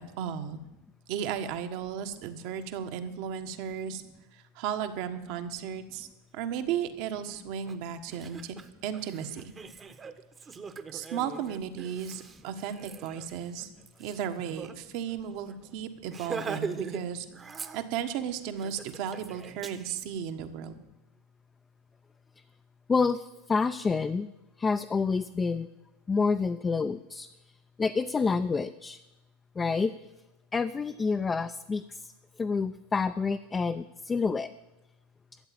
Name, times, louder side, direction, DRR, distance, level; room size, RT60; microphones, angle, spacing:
voice 1, 0.2-0.6 1.1-4.0 4.3-6.1 6.3-8.5 8.8-9.4 10.9-13.7 14.0-17.3 17.7-20.8, right 8 dB, 60° right, 8 dB, 1.4 m, -35 dB
Laughter, 7.7-7.8 8.1-14.8 15.1-15.2 15.5-15.7 16.1-17.0 17.3-18.1 18.6-20.0, right 5 dB, 25° right, 1.0 m, -41 dB
voice 2, 22.9-24.3 24.6-25.7 26.1-27.3 27.8-29.0 29.6-29.9 30.5-32.1 32.4-34.5, left 4 dB, 20° left, 8 dB, 0.5 m, -28 dB
13.5 x 8.1 x 8.7 m, 0.99 s
hypercardioid pair, 110°, 0 cm